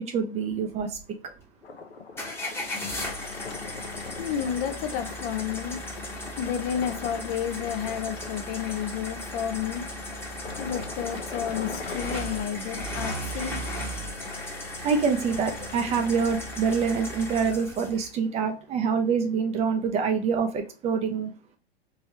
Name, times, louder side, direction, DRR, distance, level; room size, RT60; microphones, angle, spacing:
voice 1, 0.1-1.0 14.8-21.3, right 6 dB, 20° right, 0.5 m, -26 dB
sound 1, 1.6-12.5, left 4 dB, 85° left, 0.8 m, -42 dB
sound 2, 2.2-18.1, left 1 dB, 5° left, 0.9 m, -36 dB
voice 2, 4.2-5.8 6.4-9.8 10.6-13.6, left 8 dB, 35° left, 0.5 m, -31 dB
3.7 x 3.0 x 2.8 m
hypercardioid pair, 105°, 31 cm